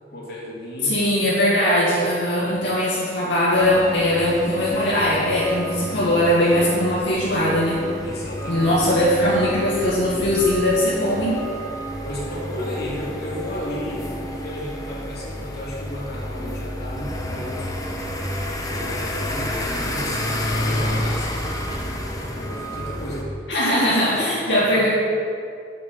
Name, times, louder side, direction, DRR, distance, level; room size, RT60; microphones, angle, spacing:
voice 1, 0.1-1.0 8.0-8.8 12.0-17.7 18.7-21.4 21.6-23.3 23.8-24.8, left 1 dB, 65° left, -5 dB, 2.7 m, -34 dB
voice 2, 0.8-7.9 8.5-11.5 23.5-24.9, left 1 dB, 80° left, -8 dB, 2.1 m, -20 dB
sound 1, 3.5-23.2, equal, 20° left, 1.1 m, -30 dB
8.1 x 7.2 x 6.9 m, 2.4 s
head